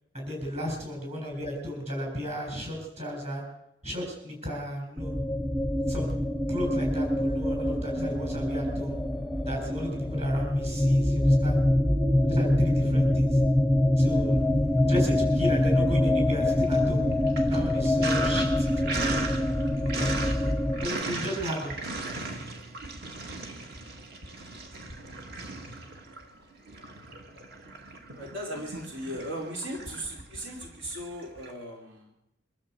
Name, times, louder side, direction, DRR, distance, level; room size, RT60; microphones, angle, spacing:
voice 1, 0.1-3.4 3.8-5.1 5.9-6.2 6.5-9.0 9.4-11.6 12.2-13.4 14.0-14.5 14.9-17.0 17.5-19.1 20.8-21.9, equal, 35° right, 2 dB, 7.6 m, -34 dB
sound 1, 5.0-20.9, left 1 dB, ahead, 0.7 m, -25 dB
Sink (filling or washing), 14.2-15.1 15.4-31.5, right 3 dB, 55° right, 2.3 m, -38 dB
voice 2, 28.1-32.1, equal, 75° right, -1 dB, 4.3 m, -37 dB
24.5 x 13.0 x 8.2 m, 0.84 s
head